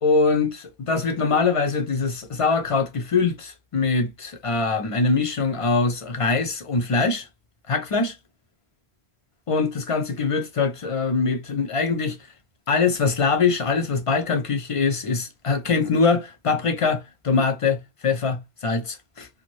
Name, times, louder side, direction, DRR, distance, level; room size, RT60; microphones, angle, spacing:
voice 1, 0.0-7.3 7.7-8.1 9.5-12.2 12.7-19.3, left 4 dB, 50° left, 0.4 m, -23 dB
2.5 x 2.1 x 2.9 m
omnidirectional pair, 1.1 m